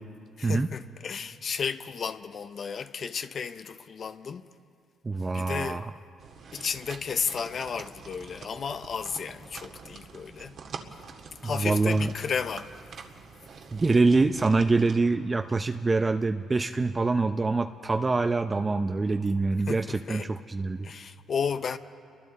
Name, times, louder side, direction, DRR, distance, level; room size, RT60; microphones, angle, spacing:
voice 1, 0.4-4.5 5.3-5.9 6.5-10.6 11.4-12.7 19.7-20.3 20.8-21.8, left 6 dB, 50° left, 0.6 m, -33 dB
voice 2, 5.0-5.9 11.4-12.1 13.7-20.9, right 3 dB, 25° right, 0.6 m, -25 dB
sound 1, 6.2-15.0, right 5 dB, 55° right, 1.8 m, -46 dB
29.5 x 23.0 x 4.1 m
cardioid pair, 95°, 0 cm